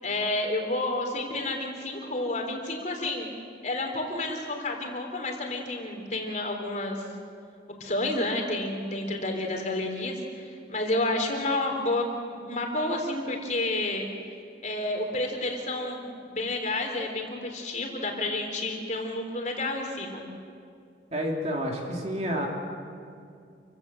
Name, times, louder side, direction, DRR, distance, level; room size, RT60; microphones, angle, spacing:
voice 1, 0.0-3.3 3.6-7.0 7.8-14.1 14.6-20.2, left 2 dB, 40° left, 2 dB, 3.6 m, -30 dB
voice 2, 21.1-22.5, equal, 35° right, 0 dB, 3.0 m, -29 dB
28.5 x 16.0 x 7.8 m, 2.4 s
head